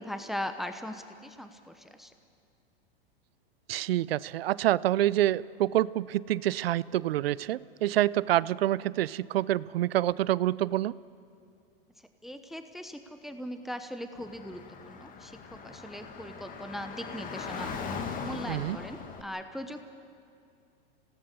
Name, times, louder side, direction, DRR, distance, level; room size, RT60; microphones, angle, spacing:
voice 1, 0.0-2.1 12.2-17.7 18.2-19.9, equal, ahead, 8 dB, 1.0 m, -39 dB
voice 2, 3.7-10.9 18.5-18.8, right 14 dB, 80° right, 21 dB, 0.5 m, -27 dB
Car / Traffic noise roadway noise, 14.2-19.2, left 5 dB, 30° left, 1.8 m, -39 dB
26.0 x 17.5 x 6.9 m, 2.4 s
hypercardioid pair, 120°, 30 cm